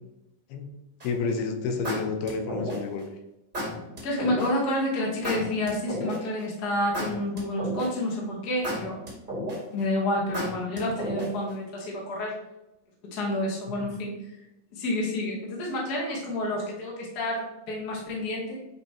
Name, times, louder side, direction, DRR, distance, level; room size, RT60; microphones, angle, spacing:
voice 1, 1.0-3.1, left 4 dB, 85° left, 5 dB, 2.8 m, -29 dB
sound 1, 1.0-1.3 1.8-3.0 3.5-4.5 5.2-6.4 6.9-8.1 8.6-9.8 10.3-11.5, equal, 20° right, 1.2 m, -32 dB
voice 2, 4.0-9.0 9.7-12.3 13.0-14.2 14.7-18.6, left 1 dB, 45° left, -3 dB, 1.3 m, -29 dB
8.1 x 3.4 x 4.4 m, 0.94 s
omnidirectional pair, 4.4 m